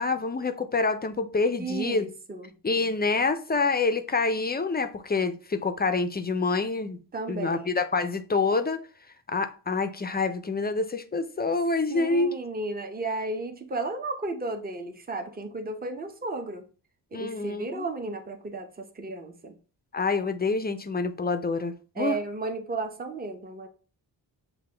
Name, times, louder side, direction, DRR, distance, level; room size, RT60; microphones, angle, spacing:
voice 1, 0.0-2.0 2.6-7.0 7.3-8.8 9.3-12.3 17.1-17.8 19.9-22.2, left 3 dB, 25° left, 0.4 m, -27 dB
voice 2, 1.6-2.5 7.1-7.7 11.9-16.6 17.1-19.5 22.0-23.7, right 3 dB, 20° right, 0.7 m, -34 dB
6.7 x 2.3 x 3.3 m
cardioid pair, 85°, 43 cm